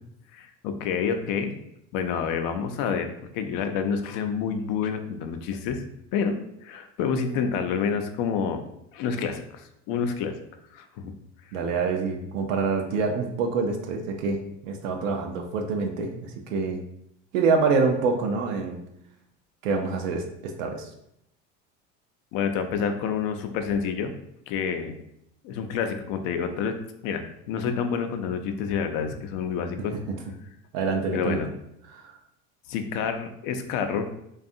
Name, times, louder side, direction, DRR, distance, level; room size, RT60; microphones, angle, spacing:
voice 1, 0.3-1.6 1.9-5.8 6.1-6.4 6.6-8.6 8.9-10.3 10.7-11.1 22.3-24.1 24.5-25.0 25.4-26.8 27.0-29.9 31.1-31.5 32.7-34.1, left 6 dB, 65° left, 7 dB, 0.5 m, -28 dB
voice 2, 11.5-16.8 17.3-18.8 19.6-20.9 30.1-30.2 30.7-31.4 31.9-32.1, right 4 dB, 85° right, 3 dB, 0.5 m, -26 dB
2.6 x 2.3 x 2.6 m, 0.78 s
hypercardioid pair, 80°, 38 cm